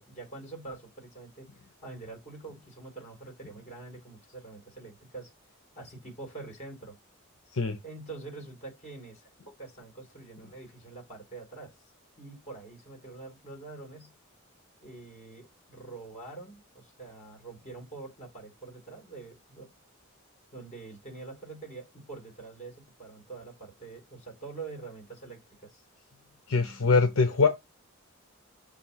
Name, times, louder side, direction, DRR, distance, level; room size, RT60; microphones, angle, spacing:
voice 1, 0.0-5.3 5.7-7.0 7.8-9.2 9.6-11.8 12.2-14.1 14.8-19.7 20.5-25.8, right 3 dB, 35° left, 4.2 m, -45 dB
voice 2, 26.5-27.5, left 4 dB, 70° left, 0.8 m, -23 dB
6.9 x 2.7 x 5.7 m
head